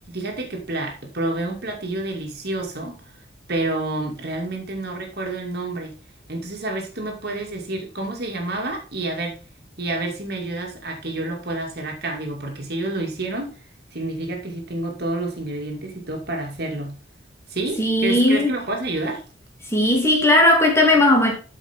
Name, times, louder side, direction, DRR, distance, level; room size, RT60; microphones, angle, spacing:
voice 1, 0.1-3.0 3.5-5.9 6.3-9.4 9.8-13.6 13.9-17.0 17.5-19.2, right 2 dB, 60° right, 2.3 m, -29 dB
voice 2, 17.8-18.5 19.6-21.3, left 1 dB, 15° left, 2.4 m, -17 dB
12.5 x 5.1 x 3.6 m
head